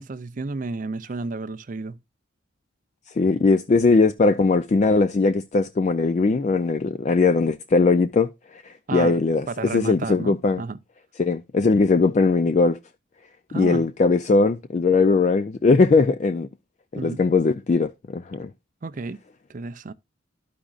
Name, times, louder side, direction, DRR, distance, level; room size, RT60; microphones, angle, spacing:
voice 1, 0.0-2.0 8.9-9.2 9.5-10.8 13.5-13.9 16.9-17.2 18.8-19.2 19.5-19.9, right 3 dB, 40° right, 0.4 m, -32 dB
voice 2, 3.2-10.6 11.2-12.8 13.5-16.5 17.0-18.5, left 3 dB, 35° left, 0.3 m, -20 dB
13.0 x 5.0 x 2.4 m
head